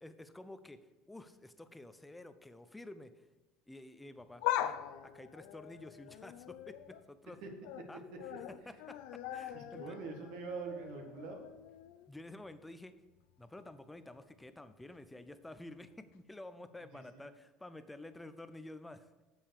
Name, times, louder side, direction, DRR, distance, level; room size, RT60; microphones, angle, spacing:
voice 1, 0.0-3.3 3.7-4.8 5.0-7.4 7.9-8.0 8.5-10.0 12.1-13.0 13.4-19.2, left 1 dB, 5° left, 11 dB, 0.5 m, -51 dB
sound 1, 4.2-7.0 7.4-7.9 8.2-12.1 12.4-12.5 13.5-13.6, left 13 dB, 75° left, 0.5 m, -41 dB
voice 2, 9.5-11.5 16.9-17.2, right 4 dB, 70° right, 3 dB, 1.5 m, -44 dB
7.2 x 7.1 x 4.8 m, 1.1 s
cardioid pair, 150°, 0 cm